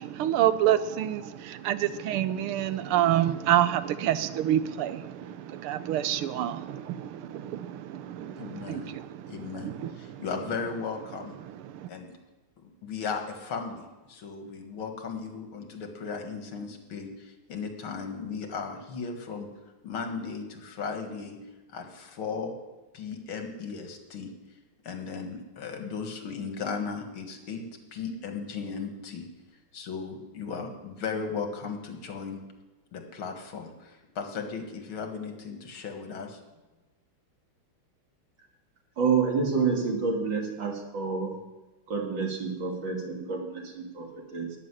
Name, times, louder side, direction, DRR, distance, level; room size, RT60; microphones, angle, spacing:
voice 1, 0.0-10.2 11.4-11.9, right 11 dB, 85° right, 13 dB, 1.6 m, -28 dB
voice 2, 8.4-8.9 9.3-11.4 11.9-12.1 12.6-19.5 19.8-21.4 21.7-22.5 22.9-24.3 24.8-27.7 27.9-29.3 29.7-32.4 32.9-36.4, left 5 dB, 75° left, 4 dB, 2.5 m, -36 dB
voice 3, 39.0-41.3 41.9-44.5, right 5 dB, 60° right, 1 dB, 2.9 m, -28 dB
14.0 x 6.8 x 9.9 m, 1.2 s
omnidirectional pair, 2.3 m